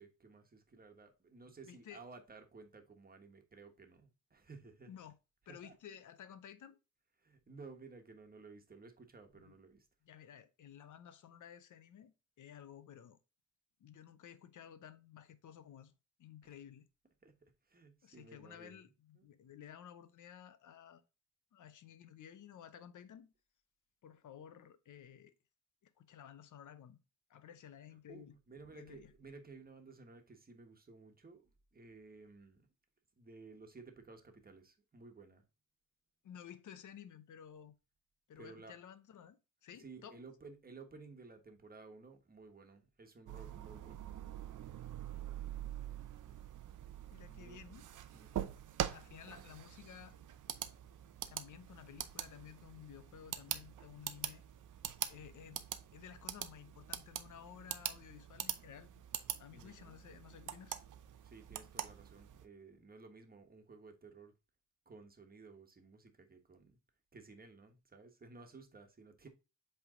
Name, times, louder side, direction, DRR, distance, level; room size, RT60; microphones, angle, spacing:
voice 1, 0.0-4.9 5.5-5.7 7.2-9.9 16.4-16.5 17.2-18.9 19.1-19.2 27.9-32.7 33.2-35.4 38.3-38.8 39.8-44.1 47.2-47.6 48.1-48.6 59.5-60.0 61.2-64.3 64.8-66.8 67.1-69.3, right 4 dB, 30° right, 1.3 m, -56 dB
voice 2, 1.4-2.0 4.9-5.2 5.5-6.8 9.3-9.6 10.0-13.2 13.8-15.9 16.2-16.9 18.0-21.0 21.5-23.3 24.0-25.3 25.8-27.0 27.3-28.4 28.7-29.1 36.2-37.7 38.3-40.2 47.1-47.8 48.9-50.2 51.3-54.4 55.1-55.6 55.9-59.0 59.4-60.8, left 9 dB, 80° left, 0.7 m, -54 dB
sound 1, 43.3-62.4, right 10 dB, 90° right, 0.7 m, -44 dB
7.9 x 3.4 x 3.6 m
wide cardioid pair, 125°, 30 cm